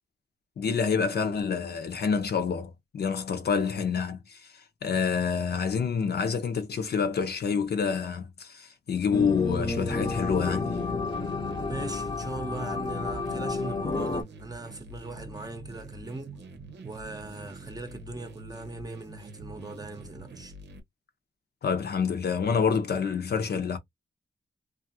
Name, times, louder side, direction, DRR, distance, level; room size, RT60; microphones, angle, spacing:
voice 1, 0.6-10.8 21.6-23.8, left 6 dB, 65° left, 0.7 m, -28 dB
sound 1, 9.1-14.2, left 3 dB, 25° left, 0.7 m, -31 dB
sound 2, 9.5-20.8, right 3 dB, 85° right, 0.8 m, -45 dB
voice 2, 11.7-16.4 16.8-20.5, right 2 dB, 20° right, 0.7 m, -40 dB
2.5 x 2.4 x 2.7 m
wide cardioid pair, 100°, 18 cm